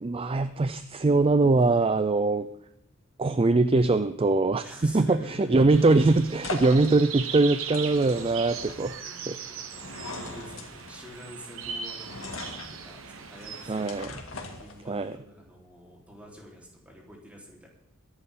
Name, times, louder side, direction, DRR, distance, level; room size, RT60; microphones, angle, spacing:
voice 1, 0.0-2.5 3.2-9.0 9.3-9.4 13.7-14.1 14.9-15.2, right 3 dB, 25° right, 11 dB, 0.4 m, -22 dB
voice 2, 4.6-5.5 8.8-14.2 14.4-17.7, equal, 5° right, -3 dB, 3.8 m, -48 dB
sound 1, 5.3-15.2, left 2 dB, 85° left, 2.2 m, -42 dB
sound 2, 5.7-14.1, right 7 dB, 80° right, 1.3 m, -39 dB
22.5 x 11.0 x 3.8 m, 0.81 s
head